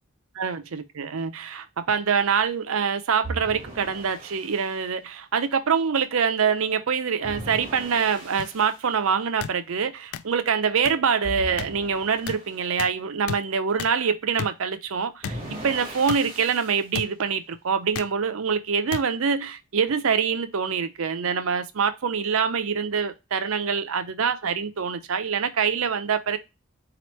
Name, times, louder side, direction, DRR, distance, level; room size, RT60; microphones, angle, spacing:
voice 1, 0.4-26.4, right 6 dB, 75° right, 0.5 m, -25 dB
sound 1, 3.2-4.7 7.2-8.7 11.2-12.6 15.2-16.8, right 1 dB, 25° right, 1.4 m, -38 dB
sound 2, 8.4-8.5 9.4-9.5 10.1-10.2 10.9-11.0 11.6-11.7 12.3-12.4 12.8-12.9 13.3-13.4 13.8-13.9 14.4-14.5 15.2-15.4 16.1-16.2 16.9-17.1 17.9-18.1 18.9-19.0 19.9-20.0, left 7 dB, 80° left, 0.3 m, -32 dB
4.2 x 3.0 x 3.0 m
head